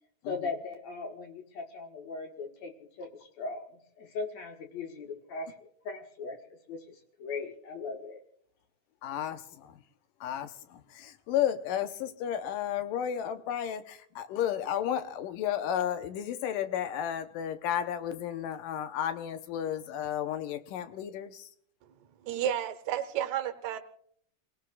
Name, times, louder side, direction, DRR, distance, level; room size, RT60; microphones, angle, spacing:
voice 1, 0.3-3.1 3.4-5.5 5.8-6.4 6.7-8.2, left 4 dB, 60° left, 2 dB, 2.7 m, -39 dB
voice 2, 9.0-9.8 10.2-21.5, left 10 dB, 90° left, 9 dB, 2.6 m, -33 dB
voice 3, 22.2-23.8, right 10 dB, 65° right, 8 dB, 2.2 m, -31 dB
29.0 x 18.0 x 2.4 m, 0.63 s
omnidirectional pair, 3.8 m